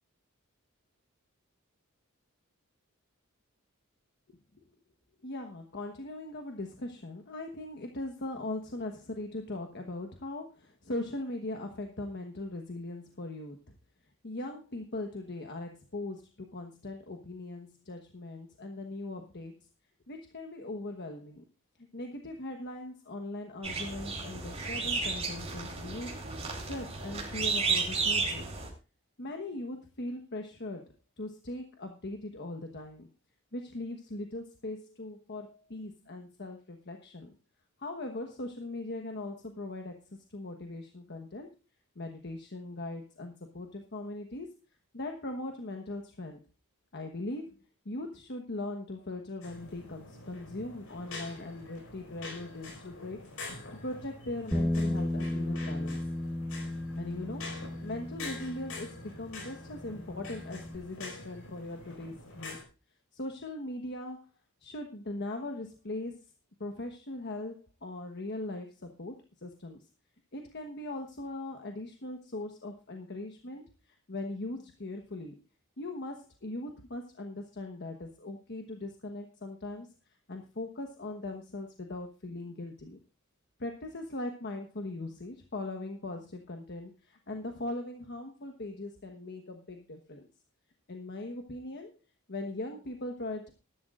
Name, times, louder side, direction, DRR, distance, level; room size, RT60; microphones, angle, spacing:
voice 1, 5.2-13.6 14.2-19.5 20.1-21.4 21.9-26.1 26.6-28.5 29.2-30.8 31.2-33.1 33.5-37.3 37.8-41.5 42.0-44.5 44.9-46.4 46.9-47.5 47.8-53.2 53.7-56.0 56.9-62.6 63.1-64.2 64.6-66.2 66.6-69.8 70.3-73.6 74.1-75.3 75.8-79.9 80.3-83.0 83.6-90.3 90.9-91.9 92.3-93.5, left 2 dB, 55° left, 4 dB, 1.2 m, -40 dB
sound 1, 23.6-28.7, right 4 dB, 30° right, 4.3 m, -33 dB
sound 2, 49.4-62.6, left 2 dB, 70° left, 5.1 m, -46 dB
Bass guitar, 54.5-60.8, left 1 dB, ahead, 0.8 m, -35 dB
19.5 x 11.5 x 2.5 m, 0.31 s
head